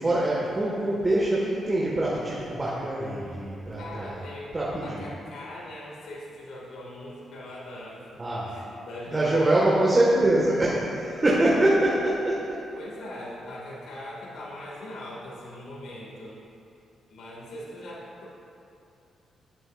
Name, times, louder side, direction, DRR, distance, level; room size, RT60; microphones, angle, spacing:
voice 1, 0.0-4.2 4.5-5.0 8.2-8.5 9.1-12.6, right 1 dB, 25° right, -6 dB, 1.9 m, -24 dB
voice 2, 3.8-9.8 12.8-16.4 17.1-18.3, left 1 dB, 75° left, -5 dB, 2.4 m, -40 dB
17.5 x 7.6 x 2.6 m, 2.6 s
cardioid pair, 90°, 0 cm